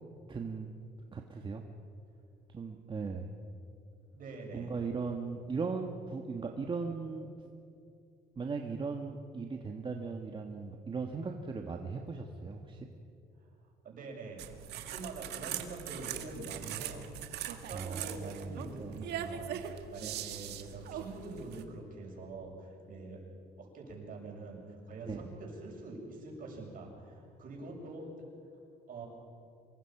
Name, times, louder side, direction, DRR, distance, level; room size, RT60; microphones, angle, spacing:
voice 1, 0.3-0.7 1.1-1.6 2.5-3.3 4.5-7.3 8.3-12.9 17.7-19.0 20.0-20.1 25.0-25.2, right 4 dB, 30° right, 3 dB, 1.6 m, -38 dB
voice 2, 4.1-4.7 13.8-14.4 14.7-19.6 19.9-23.2 23.6-28.1 28.9-29.1, right 3 dB, 55° right, 0 dB, 7.0 m, -45 dB
sound 1, 14.4-21.6, right 10 dB, 80° right, 1.6 m, -41 dB
25.5 x 22.5 x 6.0 m, 2.6 s
cardioid pair, 110°, 17 cm